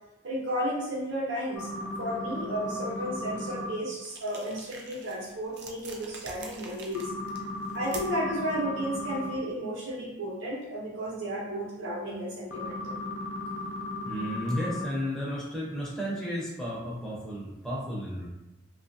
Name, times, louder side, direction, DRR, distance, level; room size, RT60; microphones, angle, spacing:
voice 1, 0.2-7.1 7.7-12.9, equal, 80° right, -3 dB, 0.9 m, -33 dB
sound 1, 1.6-3.7 6.9-9.3 12.5-14.8, left 2 dB, 75° left, 0.5 m, -36 dB
sound 2, 4.0-8.3, right 3 dB, 60° right, 0.4 m, -46 dB
voice 2, 14.1-18.3, equal, 5° left, -7 dB, 0.5 m, -33 dB
2.8 x 2.4 x 2.6 m, 0.97 s
head